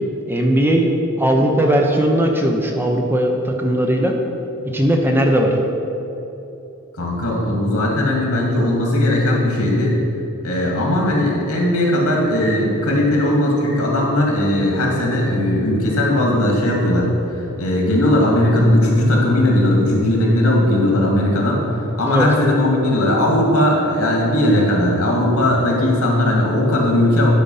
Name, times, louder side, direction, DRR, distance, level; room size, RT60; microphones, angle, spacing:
voice 1, 0.3-0.9 1.2-4.1 4.7-5.5 22.0-22.3, right 1 dB, 10° right, 2 dB, 0.7 m, -18 dB
voice 2, 7.0-9.9 10.4-17.1 17.3-21.6 22.0-27.3, left 1 dB, 80° left, -2 dB, 2.1 m, -18 dB
11.0 x 5.1 x 5.5 m, 3.0 s
head